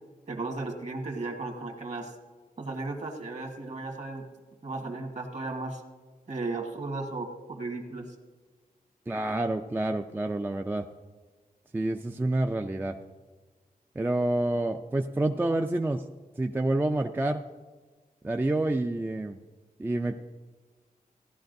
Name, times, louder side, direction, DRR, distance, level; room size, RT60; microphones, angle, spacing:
voice 1, 0.3-2.1 2.6-4.2 4.6-5.8 6.3-8.1, right 3 dB, 50° right, 3 dB, 1.4 m, -35 dB
voice 2, 9.1-10.8 11.7-13.0 14.0-16.0 16.4-17.4 18.2-19.4 19.8-20.2, right 2 dB, 15° right, 5 dB, 0.3 m, -28 dB
16.5 x 12.0 x 2.6 m, 1.3 s
wide cardioid pair, 145°, 15 cm